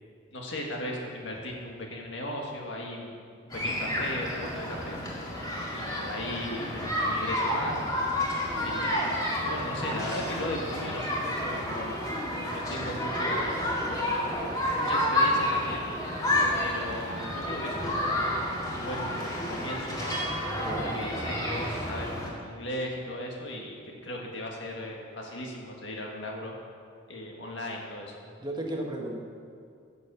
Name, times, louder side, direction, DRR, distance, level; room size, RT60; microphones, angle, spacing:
voice 1, 0.3-3.2 3.5-5.0 5.7-7.8 8.6-12.0 12.5-13.7 14.7-15.8 16.6-18.3 18.7-20.2 20.8-26.5 27.1-28.1, left 1 dB, 65° left, 0 dB, 1.8 m, -37 dB
sound 1, 3.5-22.3, left 1 dB, 20° left, 2.0 m, -30 dB
voice 2, 20.6-21.1 28.4-29.2, right 1 dB, 20° right, 0 dB, 1.1 m, -34 dB
10.5 x 7.2 x 6.9 m, 2.3 s
head